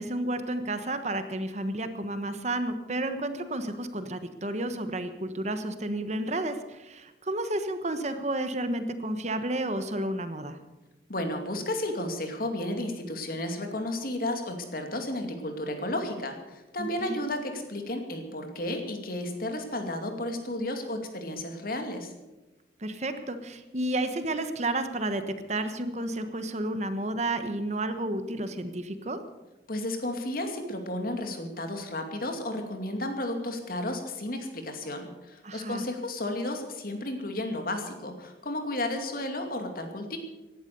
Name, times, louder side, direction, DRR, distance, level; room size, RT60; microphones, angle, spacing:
voice 1, 0.0-10.6 16.8-17.2 22.8-29.2 35.4-35.8, right 1 dB, 40° right, 9 dB, 1.2 m, -31 dB
voice 2, 11.1-22.1 29.7-40.2, left 1 dB, 50° left, 5 dB, 2.5 m, -33 dB
17.5 x 11.5 x 6.9 m, 1.1 s
head